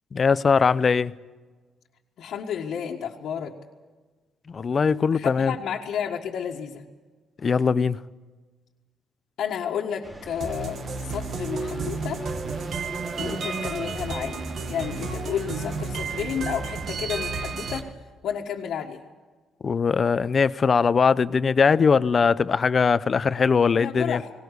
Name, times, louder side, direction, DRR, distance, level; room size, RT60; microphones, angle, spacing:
voice 1, 0.1-1.1 4.5-5.5 7.4-8.0 19.6-24.2, left 5 dB, 40° left, 0.6 m, -21 dB
voice 2, 2.2-3.5 5.1-6.8 9.4-12.2 13.2-14.4 14.7-17.9 18.2-19.0 23.8-24.3, left 8 dB, 75° left, 1.7 m, -31 dB
sound 1, 10.0-17.9, right 1 dB, 15° right, 3.3 m, -41 dB
sound 2, 10.4-17.8, right 4 dB, 60° right, 1.9 m, -32 dB
19.0 x 18.0 x 8.2 m
cardioid pair, 90°, 0 cm